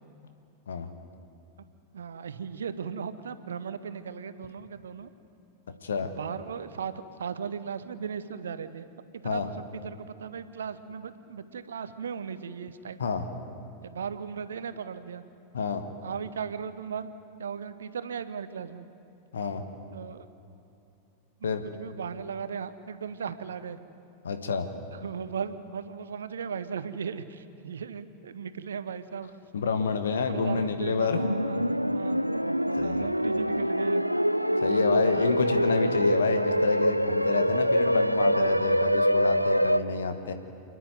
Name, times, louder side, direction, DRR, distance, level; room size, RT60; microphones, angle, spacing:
voice 1, 1.9-5.1 6.0-8.9 9.2-13.0 13.8-15.2 16.0-17.1 17.4-18.8 19.9-20.3 21.4-23.8 24.9-29.3 30.3-31.6 31.9-32.2 32.8-34.0 34.7-35.2, right 6 dB, 65° right, 13 dB, 0.9 m, -37 dB
voice 2, 19.3-19.6 21.4-21.6 24.2-24.7 29.5-31.2 32.8-33.1 34.6-40.3, left 5 dB, 65° left, 7 dB, 1.4 m, -28 dB
sound 1, 31.1-39.8, equal, 90° right, 0.4 m, -25 dB
28.5 x 10.0 x 9.4 m, 2.7 s
figure-of-eight pair, 90°, 0 cm